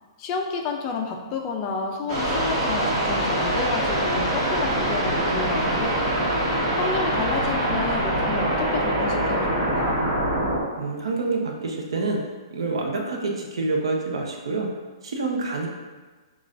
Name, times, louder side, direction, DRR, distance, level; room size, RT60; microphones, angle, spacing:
voice 1, 0.2-6.2 6.7-10.0, left 4 dB, 25° left, 2 dB, 0.4 m, -30 dB
sound 1, 2.1-10.6, right 1 dB, 35° right, 1.2 m, -24 dB
voice 2, 10.8-12.2 12.5-14.7 15.0-15.7, right 3 dB, 80° right, 1 dB, 0.7 m, -27 dB
6.3 x 2.3 x 2.5 m, 1.3 s
hypercardioid pair, 160°, 3 cm